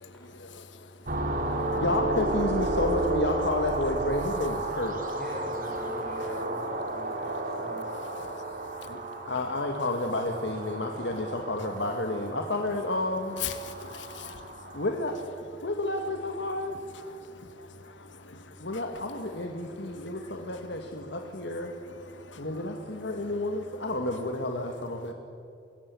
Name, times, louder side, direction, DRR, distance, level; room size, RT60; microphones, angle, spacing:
voice 1, 0.0-0.7 8.8-9.0 13.4-14.8 17.2-18.5 19.9-20.0 22.1-22.4, left 9 dB, 85° left, 1.5 m, -42 dB
sound 1, 1.1-14.9, right 2 dB, 50° right, 3.0 m, -33 dB
voice 2, 1.8-5.0 8.9-13.4 14.8-15.2 15.6-16.8 18.6-21.7 22.4-25.1, left 2 dB, 70° left, 2.0 m, -31 dB
voice 3, 5.2-7.8 18.6-18.7, left 1 dB, 5° left, 5.0 m, -40 dB
25.5 x 21.0 x 8.5 m
head